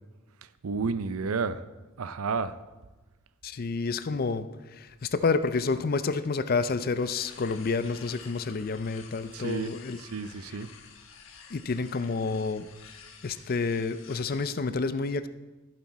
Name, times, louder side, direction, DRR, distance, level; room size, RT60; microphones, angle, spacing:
voice 1, 0.4-1.6 2.0-2.6 9.3-9.7 10.0-10.7, right 4 dB, 85° right, 14 dB, 0.6 m, -31 dB
voice 2, 3.4-10.0 11.5-12.7 13.2-15.3, left 4 dB, 45° left, 12 dB, 0.5 m, -29 dB
sound 1, 6.9-14.6, left 6 dB, 70° left, 1.1 m, -51 dB
15.5 x 7.6 x 4.1 m, 1.2 s
head